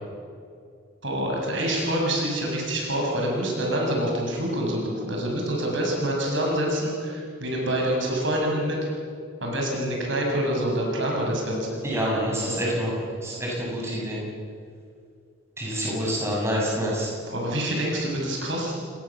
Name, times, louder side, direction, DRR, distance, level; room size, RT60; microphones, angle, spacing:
voice 1, 1.0-8.8 9.4-11.8 17.3-18.8, right 1 dB, 60° right, -1 dB, 6.9 m, -26 dB
voice 2, 11.8-14.2 15.6-17.1, equal, 15° right, -4 dB, 7.3 m, -27 dB
29.0 x 20.5 x 7.4 m, 2.3 s
head